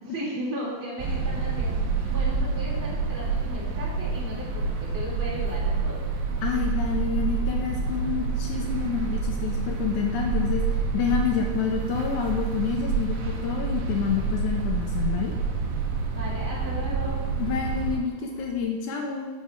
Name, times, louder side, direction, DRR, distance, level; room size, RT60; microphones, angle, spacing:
voice 1, 0.0-1.7 2.1-6.0 16.1-17.3, right 1 dB, 10° right, -8 dB, 1.3 m, -35 dB
sound 1, 1.0-18.0, right 4 dB, 85° right, 1.5 m, -28 dB
sound 2, 2.2-18.6, right 4 dB, 70° right, 1.3 m, -47 dB
voice 2, 6.4-10.6 10.9-15.3 17.4-19.3, left 6 dB, 85° left, 2 dB, 1.8 m, -28 dB
9.5 x 5.6 x 3.5 m, 1.3 s
omnidirectional pair, 4.0 m